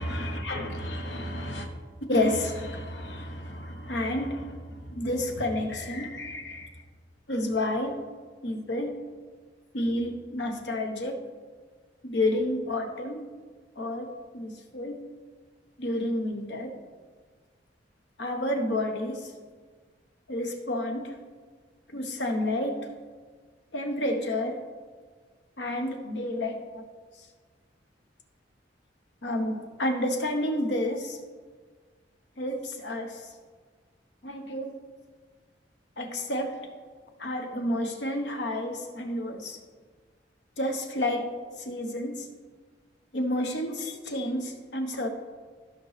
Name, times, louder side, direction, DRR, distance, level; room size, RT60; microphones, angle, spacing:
voice 1, 0.0-1.7 2.1-6.7 7.3-8.0 8.4-8.9 9.7-11.2 12.0-13.3 13.8-15.0 15.8-16.7 18.2-19.3 20.3-21.1 21.9-22.9 23.7-24.6 25.6-26.8 29.2-31.2 32.4-33.3 34.2-34.7 36.0-36.7 37.2-39.6 40.6-41.3 41.6-42.3 43.1-45.1, left 1 dB, 70° left, 4 dB, 1.1 m, -30 dB
15.0 x 5.3 x 3.3 m, 1.5 s
head